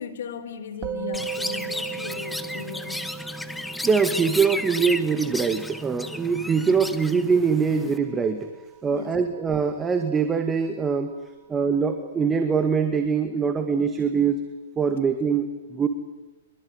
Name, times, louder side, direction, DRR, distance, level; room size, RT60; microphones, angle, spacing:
voice 1, 0.0-3.2 8.9-9.2, left 7 dB, 70° left, 12 dB, 4.2 m, -37 dB
Musical instrument, 0.8-10.3, right 8 dB, 30° right, 1.9 m, -39 dB
Chirp tweet, 1.1-8.0, left 2 dB, 5° left, 1.2 m, -34 dB
voice 2, 3.8-8.5 8.8-11.1 11.5-14.4 14.8-15.9, right 5 dB, 15° right, 6 dB, 2.0 m, -23 dB
24.5 x 23.0 x 9.8 m, 1.0 s
hypercardioid pair, 140°, 0 cm